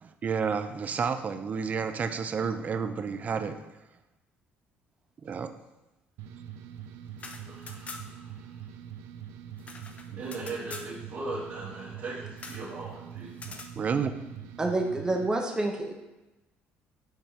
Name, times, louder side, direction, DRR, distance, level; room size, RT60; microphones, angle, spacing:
voice 1, 0.0-3.6 5.2-5.5 13.5-14.1, right 6 dB, 35° right, 9 dB, 0.6 m, -30 dB
sound 1, 6.2-15.3, right 9 dB, 85° right, 0.5 m, -44 dB
sound 2, 7.1-8.3 8.6-8.7 8.9-10.9 12.4-12.7 13.3-13.7, left 3 dB, 30° left, 0.7 m, -44 dB
voice 2, 7.4-8.3 10.1-13.3, right 3 dB, 55° right, -9 dB, 2.1 m, -39 dB
voice 3, 14.6-15.9, right 2 dB, 15° right, 2 dB, 1.1 m, -28 dB
7.7 x 4.4 x 3.4 m, 1.0 s
cardioid pair, 110°, 4 cm